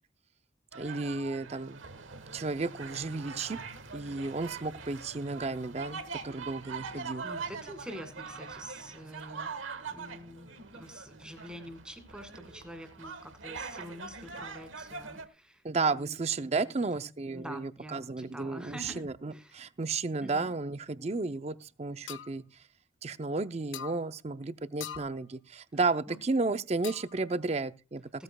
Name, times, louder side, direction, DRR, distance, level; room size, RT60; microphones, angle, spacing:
sound 1, 0.7-15.3, right 4 dB, 85° right, 1.3 m, -43 dB
voice 1, 0.8-1.8 2.3-3.6 3.9-7.2 15.6-22.4 23.0-28.2, right 3 dB, 35° right, 0.5 m, -33 dB
voice 2, 7.2-9.5 9.9-16.2 16.6-17.1 17.3-19.1 19.3-19.6 20.2-20.5 26.1-26.2, equal, 5° right, 2.0 m, -46 dB
sound 2, 22.1-22.3 23.7-24.0 24.8-25.1 26.8-27.2, left 10 dB, 75° left, 0.7 m, -41 dB
16.5 x 13.5 x 2.3 m
head